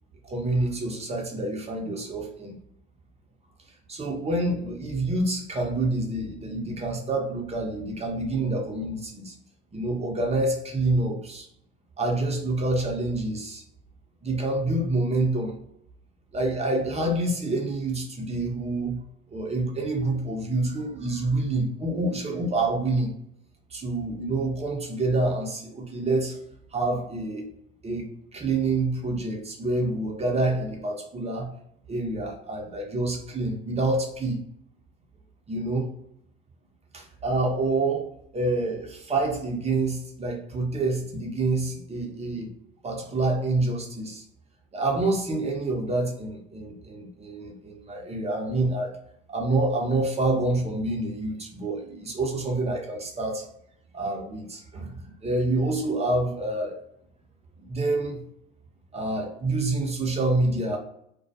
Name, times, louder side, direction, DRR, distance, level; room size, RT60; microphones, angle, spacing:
voice 1, 0.2-2.5 3.9-9.3 9.7-11.5 12.0-13.6 14.2-15.6 16.3-19.0 19.3-23.1 23.7-26.4 26.7-27.5 27.8-31.5 31.9-34.4 35.5-35.9 36.9-38.1 38.3-42.5 42.8-44.2 44.7-48.9 49.3-53.5 53.9-56.8 57.6-58.2 58.9-60.8, right 2 dB, 20° right, 1 dB, 0.7 m, -27 dB
2.3 x 2.1 x 2.7 m, 0.71 s
hypercardioid pair, 75°, 31 cm